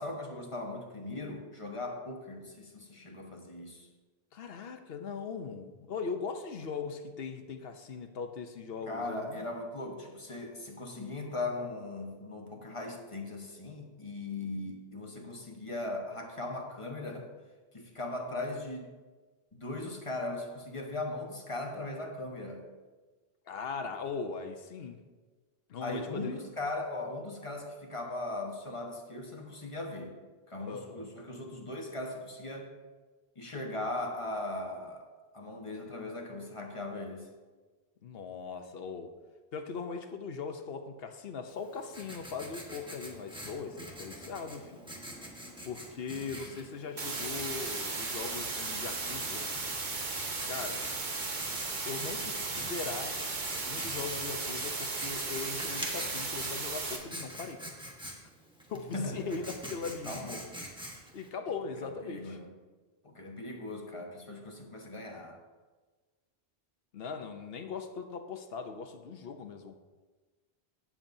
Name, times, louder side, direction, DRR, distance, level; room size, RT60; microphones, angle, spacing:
voice 1, 0.0-3.9 8.9-17.3 17.7-18.9 19.5-22.6 25.8-30.2 30.5-32.7 33.4-35.0 35.3-37.3 46.1-46.2 58.9-59.5 60.1-60.5 61.8-62.5 63.0-65.4, left 2 dB, 30° left, 1 dB, 1.2 m, -39 dB
voice 2, 4.3-9.5 23.5-25.0 25.7-26.4 30.7-31.1 38.0-39.1 39.5-44.8 45.6-49.5 50.5-50.9 51.5-53.2 53.7-57.6 58.7-60.2 61.1-62.4 66.9-69.8, left 5 dB, 70° left, 7 dB, 1.0 m, -40 dB
Writing, 41.5-61.3, equal, 5° right, 1.3 m, -45 dB
sound 1, 47.0-57.0, right 3 dB, 50° right, 1.2 m, -36 dB
17.0 x 7.3 x 2.7 m, 1.3 s
omnidirectional pair, 1.1 m